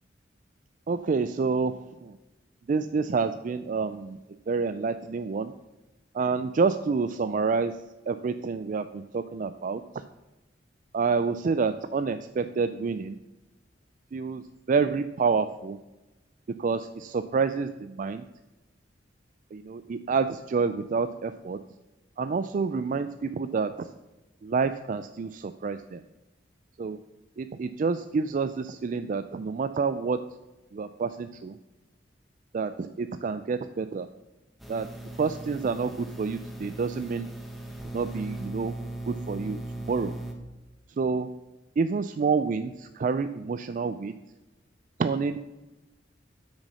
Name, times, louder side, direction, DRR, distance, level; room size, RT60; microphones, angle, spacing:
voice 1, 0.9-2.2 2.7-4.2 4.5-5.5 6.1-7.7 8.1-10.0 10.9-13.2 14.1-15.8 16.6-18.2 19.5-21.6 22.2-23.9 24.4-26.0 26.8-27.0 27.4-30.2 30.7-31.6 32.5-34.1 34.7-34.9 35.2-37.3 37.8-38.7 39.1-40.1 41.0-41.3 41.8-44.1 45.0-45.5, right 5 dB, 45° right, 11 dB, 0.3 m, -28 dB
sound 1, 34.6-40.3, right 1 dB, ahead, 1.3 m, -38 dB
8.3 x 6.4 x 6.2 m, 1.1 s
head